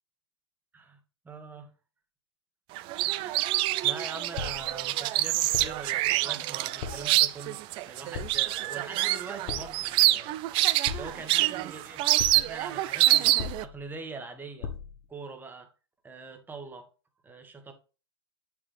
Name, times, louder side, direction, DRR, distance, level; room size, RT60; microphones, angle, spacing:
voice 1, 1.2-1.7 3.1-7.6 7.9-10.4 10.9-12.1 12.3-14.7 15.1-15.7 16.0-16.9 17.2-17.7, right 4 dB, 10° right, 1.4 m, -43 dB
sound 1, 2.8-13.6, right 16 dB, 35° right, 0.4 m, -26 dB
sound 2, 4.4-4.8 5.5-5.9 6.8-7.2 8.1-8.6 9.5-9.9 10.8-11.4 12.2-12.6 13.4-13.9 14.6-15.0, left 7 dB, 50° left, 1.1 m, -38 dB
8.5 x 5.0 x 3.3 m
hypercardioid pair, 105°, 15 cm